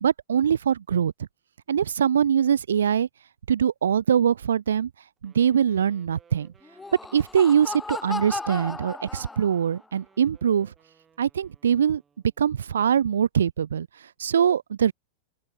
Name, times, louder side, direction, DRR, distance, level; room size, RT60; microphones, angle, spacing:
voice 1, 0.0-1.1 1.7-3.1 3.5-4.9 5.2-6.5 7.1-10.7 11.2-12.0 12.4-14.9, right 8 dB, 65° right, 0.4 m, -23 dB
Wind instrument woodwind instrument, 5.2-12.4, right 7 dB, 20° right, 4.0 m, -61 dB
Laughter, 6.6-9.8, left 3 dB, 10° left, 1.0 m, -35 dB
open air
figure-of-eight pair, 90°, 0 cm